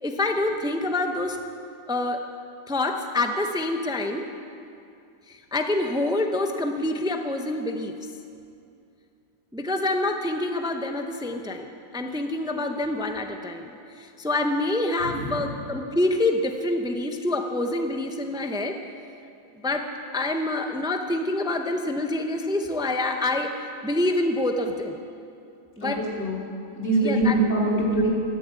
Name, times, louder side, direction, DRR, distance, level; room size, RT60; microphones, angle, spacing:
voice 1, 0.0-1.4 1.9-2.2 2.7-4.3 5.3-8.1 9.5-18.8 19.6-25.0 25.8-26.0 27.0-27.4, left 2 dB, 5° right, 5 dB, 0.3 m, -27 dB
voice 2, 15.0-15.5 25.8-26.4 26.7-28.1, right 2 dB, 40° left, -5 dB, 3.4 m, -24 dB
13.0 x 11.0 x 8.3 m, 2.5 s
omnidirectional pair, 1.8 m